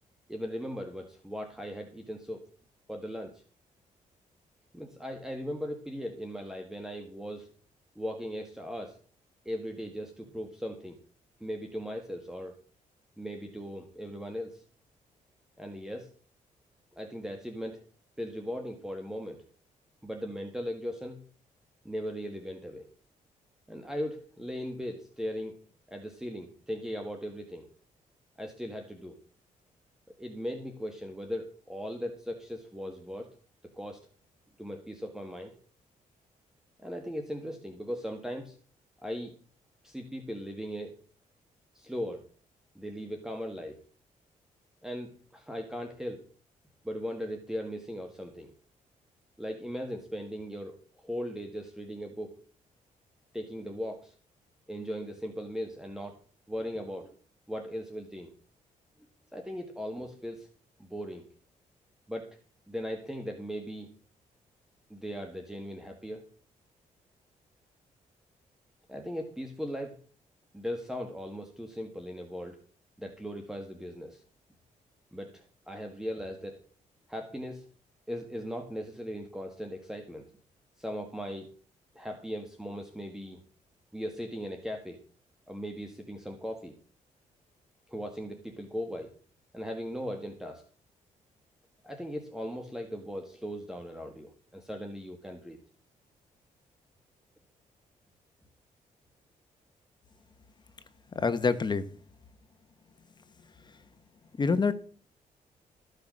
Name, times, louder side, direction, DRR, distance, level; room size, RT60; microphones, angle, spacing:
voice 1, 0.3-2.4 2.9-3.4 4.7-7.5 8.0-9.0 9.5-11.0 11.4-12.5 13.2-14.6 15.6-16.1 16.9-17.8 18.2-19.4 20.0-21.2 21.9-22.9 23.7-25.6 25.9-27.7 28.4-29.2 30.2-33.3 33.8-34.1 34.6-35.5 36.8-38.6 39.0-39.3 39.8-40.9 41.7-42.2 42.8-43.8 44.8-46.2 46.8-48.5 49.4-50.8 51.0-52.4 53.3-54.1 54.7-56.2 56.5-57.1 57.5-58.3 59.3-60.5 60.8-61.3 62.1-62.3 62.7-63.9 64.9-66.3 68.9-70.0 70.5-72.6 73.0-74.2 75.1-76.6 77.1-77.6 78.1-80.3 80.8-81.5 82.0-83.4 83.9-85.0 85.5-86.7 87.9-89.1 89.5-90.6 91.8-95.6, equal, 5° right, 1.7 m, -38 dB
voice 2, 101.1-101.8 104.4-104.7, left 4 dB, 30° left, 1.2 m, -26 dB
14.0 x 6.6 x 6.3 m
cardioid pair, 110°, 14 cm